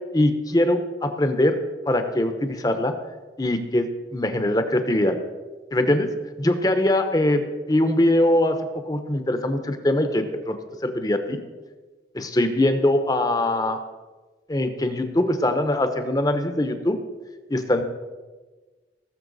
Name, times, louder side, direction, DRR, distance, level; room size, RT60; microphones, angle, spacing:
voice 1, 0.1-1.6 1.9-2.9 3.4-5.2 5.7-6.1 6.4-8.6 8.9-10.6 10.8-11.4 12.1-13.8 14.5-17.0 17.5-17.8, left 1 dB, 20° left, 8 dB, 0.8 m, -22 dB
19.0 x 6.8 x 4.0 m, 1.3 s
head